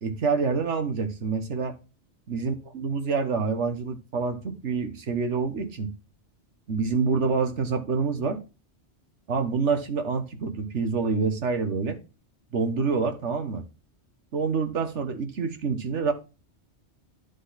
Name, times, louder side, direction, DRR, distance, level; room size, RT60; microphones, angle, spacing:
voice 1, 0.0-1.8 2.3-5.9 6.7-8.4 9.3-12.0 12.5-13.7 14.3-16.1, right 5 dB, 80° right, 1.6 m, -27 dB
11.0 x 4.1 x 4.1 m
omnidirectional pair, 1.2 m